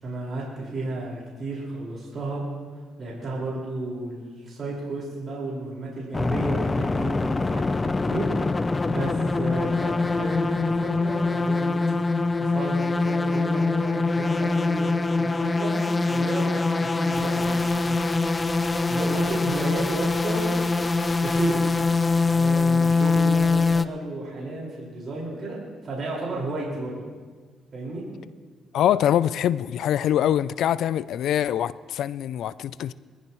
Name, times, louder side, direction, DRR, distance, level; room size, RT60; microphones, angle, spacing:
voice 1, 0.0-2.4 3.0-11.8 12.4-18.0 18.9-21.7 22.1-25.6 25.8-27.0 27.7-28.0, right 2 dB, 45° right, -4 dB, 5.0 m, -33 dB
sound 1, 6.1-23.9, left 3 dB, 25° left, 0.5 m, -23 dB
voice 2, 28.7-32.9, left 10 dB, 75° left, 17 dB, 0.4 m, -24 dB
22.5 x 14.5 x 3.1 m, 1.5 s
cardioid pair, 90°, 0 cm